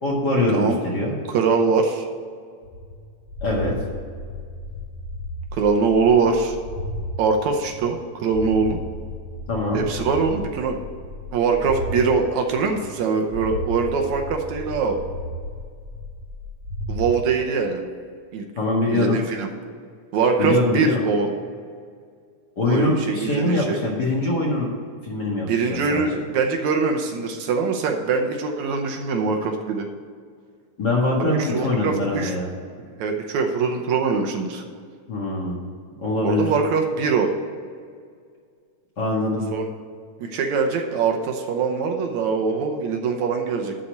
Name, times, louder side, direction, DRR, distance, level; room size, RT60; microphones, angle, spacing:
voice 1, 0.0-1.1 3.4-3.7 9.5-9.8 18.6-19.2 20.4-21.0 22.6-24.7 25.0-26.0 30.8-32.5 35.1-35.6 35.9-36.4 39.0-39.4, left 2 dB, 40° left, -3 dB, 2.0 m, -23 dB
voice 2, 1.3-2.1 5.5-6.6 7.2-8.8 9.7-10.8 11.3-15.0 16.9-17.8 18.3-18.5 18.9-19.5 20.1-21.3 22.7-23.8 25.5-29.9 31.2-32.3 32.8-34.6 36.2-37.3 39.5-39.7 40.2-43.8, right 5 dB, 75° right, 3 dB, 2.1 m, -22 dB
sound 1, 2.6-7.1 7.5-12.1 12.5-13.0 13.3-17.1, left 1 dB, 30° right, 2.0 m, -34 dB
11.5 x 4.3 x 8.0 m, 2.1 s
omnidirectional pair, 3.5 m